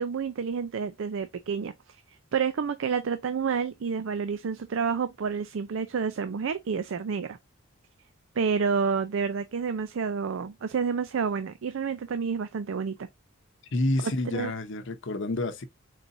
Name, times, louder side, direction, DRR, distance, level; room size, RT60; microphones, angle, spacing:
voice 1, 0.0-1.7 2.3-7.4 8.4-13.1 14.3-14.5, right 6 dB, 70° right, 0.4 m, -29 dB
voice 2, 13.7-15.6, left 2 dB, 65° left, 0.8 m, -29 dB
4.6 x 4.1 x 2.6 m
head